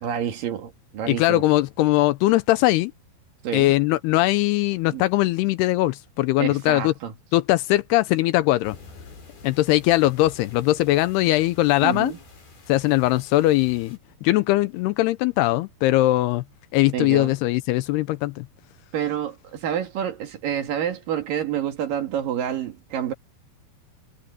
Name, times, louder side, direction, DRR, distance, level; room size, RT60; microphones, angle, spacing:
voice 1, 0.0-1.4 3.4-3.7 4.9-5.0 6.4-7.1 11.8-12.2 16.9-17.3 18.9-23.1, right 9 dB, 60° right, 3.1 m, -28 dB
voice 2, 1.1-2.9 3.5-6.9 7.3-8.8 9.4-12.1 12.7-16.4 16.7-18.5, left 17 dB, 80° left, 2.5 m, -20 dB
sound 1, 8.6-14.0, left 4 dB, 65° left, 8.3 m, -48 dB
omnidirectional pair, 4.9 m